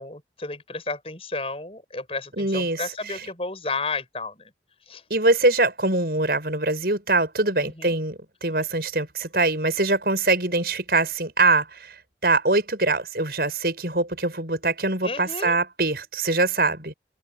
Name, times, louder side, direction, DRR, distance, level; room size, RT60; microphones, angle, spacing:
voice 1, 0.0-4.3 4.9-5.0 7.6-7.9 15.0-15.6, left 3 dB, 35° left, 5.8 m, -32 dB
voice 2, 2.4-3.3 5.1-11.9 12.2-16.9, right 2 dB, 60° right, 7.2 m, -23 dB
head